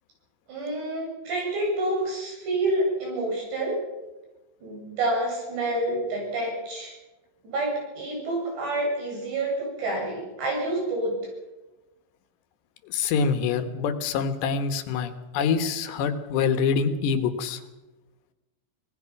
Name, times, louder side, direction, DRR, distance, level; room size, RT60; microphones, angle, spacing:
voice 1, 0.5-3.8 4.6-6.9 7.4-11.2, right 1 dB, 80° right, -1 dB, 9.8 m, -28 dB
voice 2, 12.9-17.6, left 6 dB, 80° left, 9 dB, 3.5 m, -25 dB
25.5 x 19.0 x 5.9 m, 1.1 s
omnidirectional pair, 4.9 m